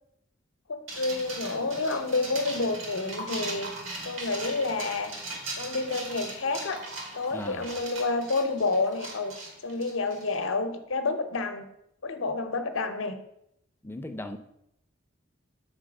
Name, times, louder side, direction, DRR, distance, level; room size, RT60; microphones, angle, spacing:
voice 1, 0.7-3.7 4.0-5.1 5.6-6.8 7.1-9.3 9.6-11.7 12.0-13.2, left 3 dB, 85° left, 8 dB, 0.7 m, -29 dB
sound 1, 0.9-10.4, right 2 dB, 85° right, 1.7 m, -39 dB
voice 2, 7.3-7.7 13.8-14.4, left 1 dB, 10° left, 7 dB, 0.4 m, -37 dB
6.5 x 4.0 x 6.1 m, 0.78 s
head